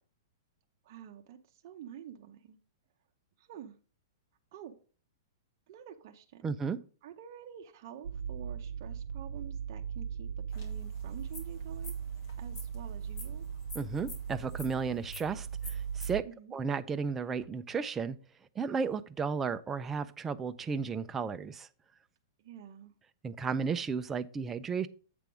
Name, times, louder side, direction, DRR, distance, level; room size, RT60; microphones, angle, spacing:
voice 1, 0.8-2.6 3.4-3.8 4.5-4.8 5.7-6.5 7.0-13.5 16.2-16.5 22.4-22.9, right 9 dB, 40° right, 2 dB, 0.7 m, -49 dB
voice 2, 6.4-6.8 13.7-16.3 16.5-18.2 18.6-21.7 23.2-24.9, right 5 dB, 10° right, 11 dB, 0.3 m, -34 dB
sound 1, 8.0-16.2, right 7 dB, 85° right, 0.5 m, -39 dB
sound 2, 10.5-16.1, left 3 dB, 45° left, 2.2 m, -50 dB
7.7 x 3.5 x 6.0 m, 0.39 s
hypercardioid pair, 160°, 2 cm